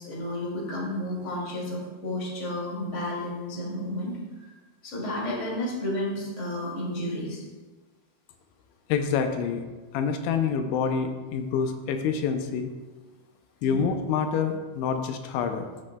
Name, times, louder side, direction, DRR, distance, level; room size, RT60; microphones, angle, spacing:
voice 1, 0.0-4.5 4.8-7.4 13.6-13.8, left 1 dB, 25° left, -6 dB, 1.8 m, -32 dB
voice 2, 8.9-9.6 9.9-12.7 13.6-15.7, left 6 dB, 85° left, 6 dB, 2.9 m, -27 dB
15.0 x 6.1 x 2.2 m, 1.3 s
omnidirectional pair, 5.2 m